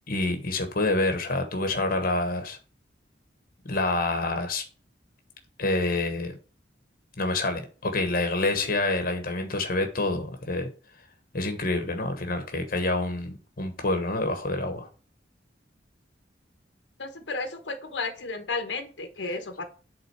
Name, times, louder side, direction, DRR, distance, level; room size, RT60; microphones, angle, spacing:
voice 1, 0.1-2.6 3.6-4.6 5.6-6.3 7.2-10.7 11.3-14.9, left 2 dB, 55° left, 1.1 m, -27 dB
voice 2, 17.0-19.6, left 3 dB, 90° left, 1.1 m, -33 dB
8.2 x 3.7 x 4.6 m
head